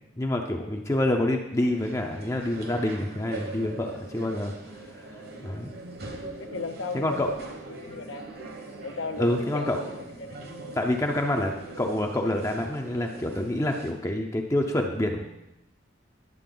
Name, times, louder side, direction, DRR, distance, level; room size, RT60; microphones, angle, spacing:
voice 1, 0.2-4.5 5.4-5.7 6.9-7.3 9.2-9.9 10.8-15.3, left 1 dB, 15° left, 2 dB, 0.6 m, -27 dB
sound 1, 1.6-13.9, right 2 dB, 50° right, 1.1 m, -42 dB
voice 2, 6.4-7.4 7.7-8.3 8.8-10.8, left 4 dB, 70° left, 8 dB, 0.7 m, -37 dB
10.5 x 7.6 x 3.8 m, 0.91 s
head